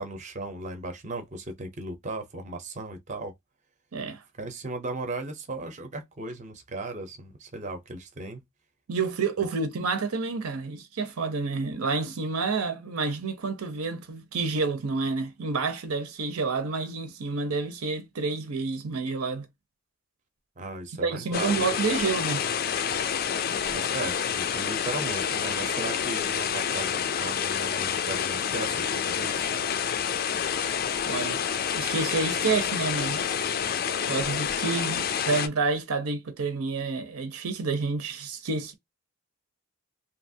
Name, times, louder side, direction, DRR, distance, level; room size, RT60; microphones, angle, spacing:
voice 1, 0.0-3.3 4.4-8.4 20.6-21.6 23.7-29.5, right 2 dB, 35° right, 0.5 m, -36 dB
voice 2, 8.9-19.5 21.0-22.4 31.1-31.4 31.7-33.3 34.1-38.7, right 4 dB, 90° right, 0.7 m, -29 dB
sound 1, 21.3-35.5, left 8 dB, 45° left, 0.3 m, -28 dB
2.9 x 2.3 x 2.6 m
head